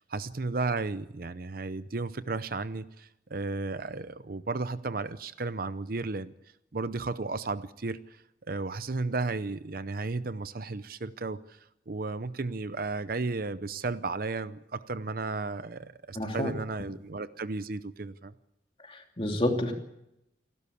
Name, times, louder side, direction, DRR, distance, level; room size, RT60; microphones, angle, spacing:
voice 1, 0.0-6.3 6.7-8.0 8.5-11.4 11.9-18.3, right 3 dB, 50° right, 14 dB, 0.7 m, -34 dB
voice 2, 16.1-16.5 18.8-19.7, left 1 dB, 30° left, 3 dB, 2.8 m, -29 dB
28.0 x 12.5 x 8.5 m, 0.85 s
head